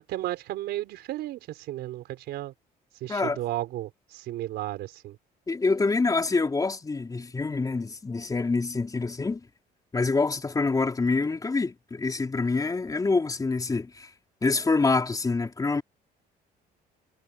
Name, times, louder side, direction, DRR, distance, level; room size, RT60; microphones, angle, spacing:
voice 1, 0.0-2.5 3.0-5.2, right 15 dB, 80° right, 4.5 m, -34 dB
voice 2, 3.1-3.4 5.5-9.4 9.9-14.1 14.4-15.8, left 3 dB, 20° left, 4.3 m, -26 dB
cardioid pair, 110°, 17 cm